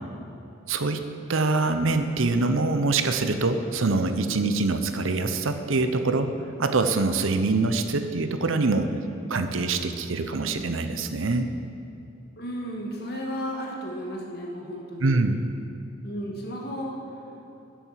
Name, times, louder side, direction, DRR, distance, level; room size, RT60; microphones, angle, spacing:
voice 1, 0.7-6.3 6.6-8.9 9.3-11.5 15.0-15.5, right 3 dB, 80° right, 8 dB, 0.8 m, -24 dB
voice 2, 12.4-15.1 16.0-17.0, equal, 50° left, -1 dB, 1.9 m, -33 dB
10.5 x 7.1 x 7.6 m, 3.0 s
head